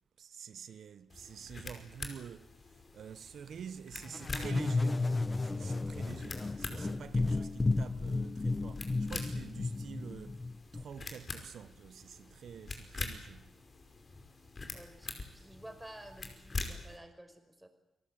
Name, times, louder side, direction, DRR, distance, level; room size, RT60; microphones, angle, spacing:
voice 1, 0.2-2.5 2.9-10.4 10.7-13.5, right 7 dB, 75° right, 0.8 m, -48 dB
sound 1, 1.1-17.0, left 3 dB, 40° left, 5.3 m, -45 dB
voice 2, 1.8-2.1 6.4-6.7 7.2-7.6 14.7-17.7, right 1 dB, 10° right, 5.3 m, -53 dB
sound 2, 4.0-10.8, left 3 dB, 25° left, 1.0 m, -33 dB
29.0 x 19.0 x 8.9 m
cardioid pair, 85°, 0 cm